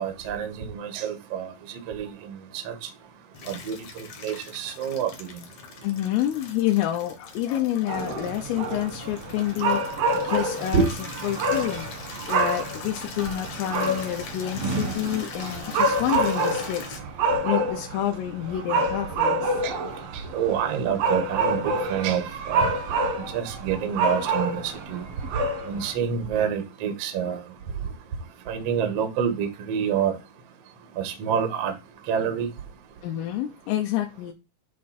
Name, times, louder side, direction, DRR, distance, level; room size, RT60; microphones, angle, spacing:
voice 1, 0.0-2.9 3.4-5.4 10.7-10.9 19.6-19.7 20.1-22.8 23.2-25.0 25.6-27.4 28.5-30.1 31.0-31.7 32.1-32.5, right 7 dB, 85° right, 1.4 m, -27 dB
Water tap faucet / Liquid, 3.3-17.0, left 5 dB, 65° left, 1.8 m, -42 dB
voice 2, 5.8-10.0 10.3-10.9 11.2-11.9 12.3-17.0 17.4-19.5 33.0-34.3, left 12 dB, 80° left, 3.5 m, -28 dB
sound 1, 7.9-25.9, right 2 dB, 65° right, 1.5 m, -27 dB
11.0 x 3.6 x 4.3 m
omnidirectional pair, 5.8 m